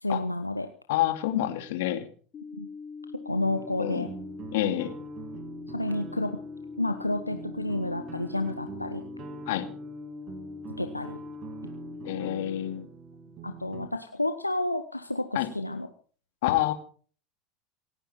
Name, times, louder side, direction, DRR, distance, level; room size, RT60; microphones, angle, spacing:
voice 1, 0.0-0.7 2.6-2.7 3.2-4.1 5.7-6.4 6.8-9.0 10.8-11.2 13.4-15.9, left 2 dB, 90° left, 7 dB, 1.0 m, -30 dB
voice 2, 0.9-2.1 3.8-4.1 4.5-4.9 9.5-9.7 12.0-12.9 15.3-15.5 16.4-16.7, left 13 dB, 60° left, 7 dB, 2.5 m, -27 dB
sound 1, 2.3-12.3, left 5 dB, 30° left, 2.1 m, -42 dB
sound 2, 3.4-13.9, right 7 dB, 40° right, 1.7 m, -45 dB
28.0 x 10.0 x 4.3 m, 0.43 s
figure-of-eight pair, 75°, 0 cm